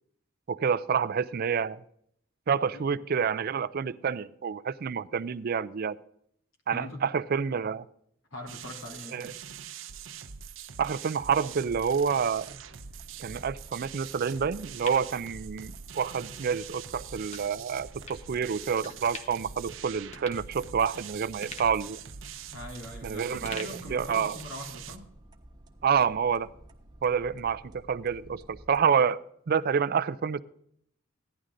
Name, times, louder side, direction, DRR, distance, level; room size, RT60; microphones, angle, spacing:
voice 1, 0.5-1.8 2.5-6.0 6.7-7.9 9.1-9.3 10.8-12.6 13.2-22.0 23.0-24.4 25.8-26.5 27.0-29.2 29.5-30.4, right 6 dB, 50° right, 0.4 m, -28 dB
voice 2, 6.7-7.1 8.3-9.3 16.2-16.3 22.5-25.1, left 1 dB, 80° left, 3.3 m, -42 dB
sound 1, 8.5-25.0, right 8 dB, 75° right, 0.7 m, -44 dB
sound 2, 11.4-28.8, right 1 dB, 20° right, 1.1 m, -54 dB
sound 3, 14.4-16.0 16.4-16.5 17.3-17.5 18.1-18.2 18.8-19.5 19.8-19.9 20.1-21.0 21.4-23.0 23.4-24.6 24.9-25.0, left 3 dB, 35° left, 1.3 m, -45 dB
15.5 x 11.0 x 3.8 m
head